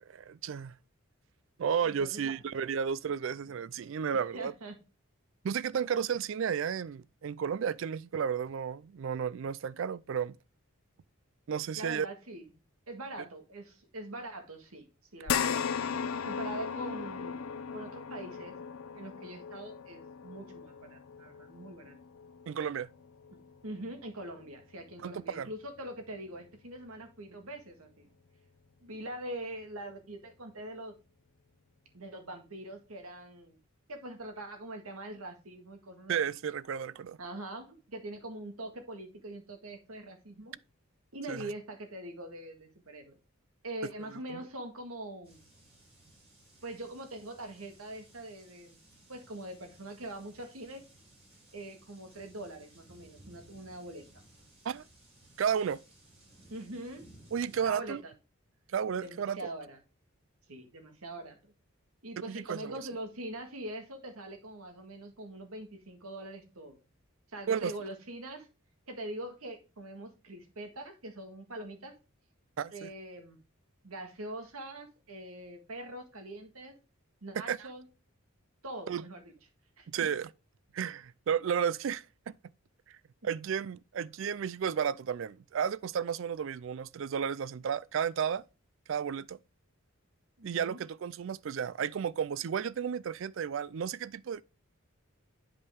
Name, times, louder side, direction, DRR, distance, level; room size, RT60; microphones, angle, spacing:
voice 1, 0.1-0.7 1.6-4.5 5.4-10.4 11.5-12.1 22.5-22.9 25.0-25.5 36.1-37.2 41.3-41.5 44.3-44.4 54.6-54.8 55.4-55.8 57.3-58.0 58.7-59.5 62.2-62.8 67.5-67.7 72.6-72.9 77.5-77.6 78.9-79.0 79.9-80.3 80.7-82.3 83.2-88.4 88.9-89.4 90.4-94.4, right 7 dB, 60° right, 0.3 m, -33 dB
voice 2, 1.8-2.3 4.3-4.8 11.8-12.5 12.9-14.9 15.1-15.6 16.1-17.4 17.7-18.6 18.9-22.0 23.6-28.1 28.8-30.9 31.9-33.6 33.9-36.2 37.2-40.6 41.1-43.2 43.6-45.5 46.6-48.8 49.1-50.8 51.5-54.0 56.5-57.0 57.6-58.1 59.0-59.8 60.5-61.4 62.0-66.8 67.3-68.5 68.9-72.0 72.7-73.4 73.8-76.8 77.2-77.8 78.6-79.3 79.8-79.9 90.4-90.8, right 1 dB, 90° right, 1.8 m, -43 dB
sound 1, 15.3-23.9 24.3-24.4 25.9-26.0, left 7 dB, 80° left, 0.6 m, -37 dB
sound 2, 45.2-57.7, right 1 dB, 25° right, 3.2 m, -59 dB
8.3 x 5.3 x 3.5 m
head